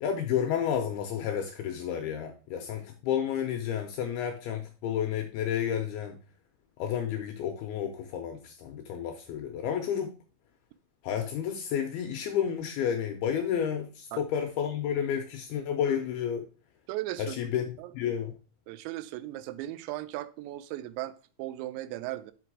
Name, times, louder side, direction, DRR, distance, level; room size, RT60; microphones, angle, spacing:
voice 1, 0.0-6.2 6.8-10.1 11.0-16.4 17.2-17.7 17.9-18.3, left 9 dB, 80° left, 2.3 m, -31 dB
voice 2, 16.9-17.5 17.8-17.9 18.7-22.3, right 15 dB, 85° right, 2.8 m, -37 dB
6.0 x 5.6 x 4.7 m
omnidirectional pair, 5.2 m